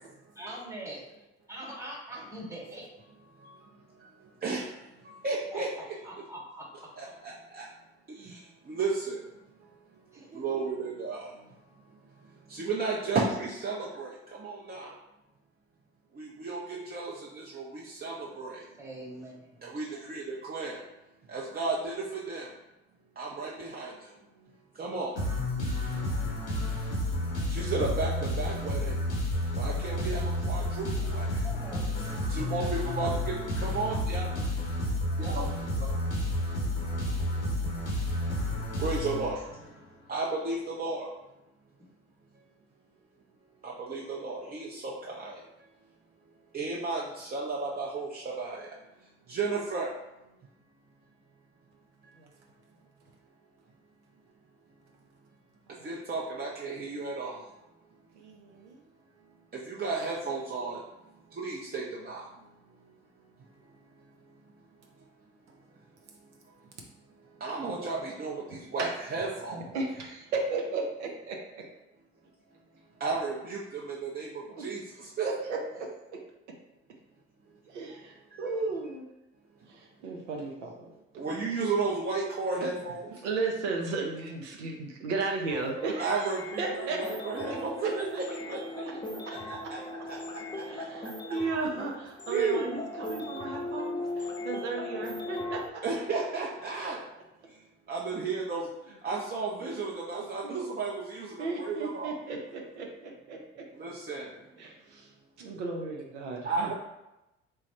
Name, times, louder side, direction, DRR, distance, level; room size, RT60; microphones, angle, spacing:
voice 1, 0.3-1.0 1.5-2.9 5.5-5.6 6.0-6.9 10.1-10.4 18.8-19.7 31.4-32.5, right 1 dB, 10° right, -2 dB, 1.2 m, -43 dB
voice 2, 5.1-6.0 7.0-7.6 8.2-8.4 8.7-9.2 10.3-11.3 12.5-14.1 14.4-14.9 16.2-18.6 19.6-20.8 21.3-22.5 23.2-23.9 24.8-25.1 27.5-28.9 29.6-31.3 32.3-34.4 35.2-35.9 38.8-39.4 40.1-41.1 43.6-45.4 46.5-48.7 49.3-49.9 55.8-57.4 59.7-60.8 61.4-62.2 67.4-69.6 73.0-75.3 81.2-83.1 86.0-89.0 89.3-89.8 90.1-90.2 92.3-92.8 95.8-97.0 97.9-98.7 99.0-102.1 103.8-104.3 106.4-106.7, right 3 dB, 25° right, -3 dB, 0.6 m, -33 dB
sound 1, 25.1-39.7, left 1 dB, 85° left, 0.8 m, -31 dB
voice 3, 58.2-58.8 68.8-68.9 69.5-71.6 74.5-74.7 75.2-76.2 77.7-79.0 79.7-81.2 82.6-82.7 83.2-87.0 87.4-87.6 90.7-95.8 99.6-99.7 100.4-100.6 101.4-103.6 104.6-105.1 105.4-106.7, right 3 dB, 80° right, 0 dB, 0.6 m, -35 dB
sound 2, 85.5-95.7, left 2 dB, 15° left, 0.6 m, -39 dB
3.3 x 2.3 x 4.1 m, 0.94 s
figure-of-eight pair, 55°, 34 cm